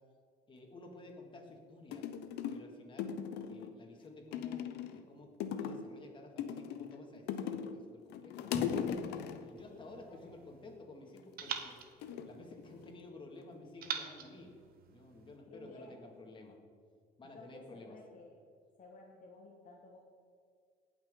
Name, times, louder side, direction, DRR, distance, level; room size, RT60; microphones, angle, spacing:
voice 1, 0.5-2.0 2.5-3.2 3.5-7.6 7.9-8.5 9.4-11.8 12.3-14.5 14.9-16.6 17.2-18.0, left 2 dB, 30° left, 1 dB, 2.0 m, -53 dB
sound 1, 1.5-1.6 1.9-2.7 3.0-3.7 4.3-5.0 5.4-5.9 6.4-7.8 8.1-9.5 11.1-11.5 12.0-13.1 13.4-13.9, left 8 dB, 85° left, 0.7 m, -39 dB
Drum, 8.5-10.6, equal, 10° right, 1.4 m, -49 dB
sound 2, 9.6-10.8 11.4-13.0 13.8-15.4, right 7 dB, 60° right, 1.0 m, -45 dB
voice 2, 9.7-10.3 15.5-16.1 17.2-18.4 18.8-20.0, left 2 dB, 50° left, -1 dB, 1.4 m, -55 dB
17.5 x 6.0 x 3.7 m, 2.1 s
cardioid pair, 110°, 17 cm